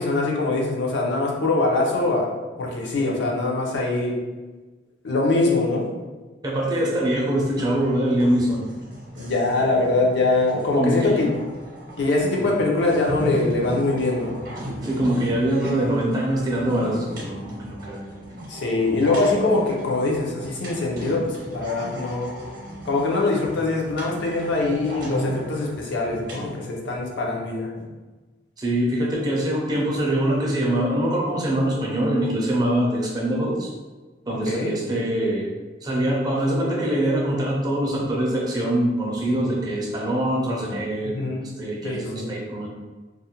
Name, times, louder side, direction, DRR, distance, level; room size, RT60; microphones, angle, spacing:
voice 1, 0.0-2.3 2.6-4.2 5.0-5.9 9.2-11.3 12.0-14.4 18.5-22.3 22.9-27.9 34.5-34.7 41.0-41.4 41.8-42.3, left 2 dB, 70° left, -2 dB, 0.5 m, -23 dB
voice 2, 6.4-8.6 10.7-11.2 12.4-12.6 14.8-18.0 25.0-25.3 28.6-33.7 34.3-35.5 35.8-42.7, right 1 dB, 20° right, -4 dB, 0.4 m, -24 dB
sound 1, 7.5-26.6, equal, 50° right, 0.7 m, -36 dB
2.4 x 2.0 x 2.8 m, 1.3 s
head